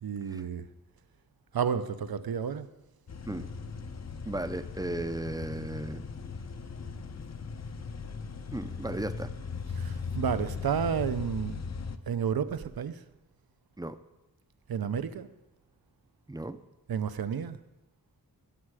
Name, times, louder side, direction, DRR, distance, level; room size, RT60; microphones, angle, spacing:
voice 1, 0.0-0.6 1.5-2.7 9.8-11.6 12.1-13.0 14.7-15.3 16.9-17.6, right 7 dB, 75° right, 13 dB, 0.6 m, -31 dB
sound 1, 3.1-12.0, left 5 dB, 45° left, 0.7 m, -38 dB
voice 2, 4.3-6.0 8.5-9.3 13.8-14.0 16.3-16.6, right 1 dB, 10° right, 11 dB, 0.5 m, -35 dB
16.0 x 7.5 x 4.8 m, 1.0 s
wide cardioid pair, 85°, 37 cm